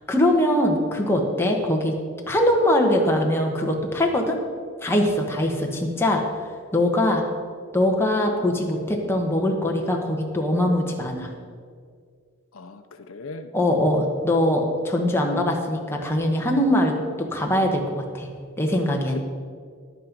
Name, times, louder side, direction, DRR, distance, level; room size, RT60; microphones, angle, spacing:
voice 1, 0.1-1.9 2.3-4.4 4.8-6.2 6.7-7.2 7.7-11.3 13.5-18.3 18.6-19.2, left 1 dB, 10° left, 1 dB, 1.1 m, -22 dB
voice 2, 12.5-13.5 19.1-19.2, left 3 dB, 70° left, 8 dB, 0.6 m, -38 dB
10.5 x 8.7 x 5.2 m, 2.1 s
head